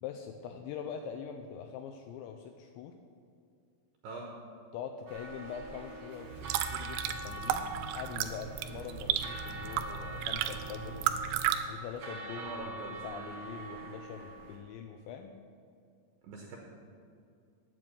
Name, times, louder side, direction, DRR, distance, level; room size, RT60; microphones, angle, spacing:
voice 1, 0.0-3.0 4.7-11.2 11.7-12.6 13.0-15.4, left 7 dB, 90° left, 6 dB, 2.5 m, -43 dB
sound 1, 5.1-14.6, right 2 dB, 50° right, 2.2 m, -45 dB
sound 2, 6.2-11.6, right 10 dB, 90° right, 2.5 m, -34 dB
voice 2, 12.3-13.0 16.2-16.6, right 3 dB, 70° right, -1 dB, 2.7 m, -43 dB
9.5 x 8.7 x 8.5 m, 2.4 s
omnidirectional pair, 5.8 m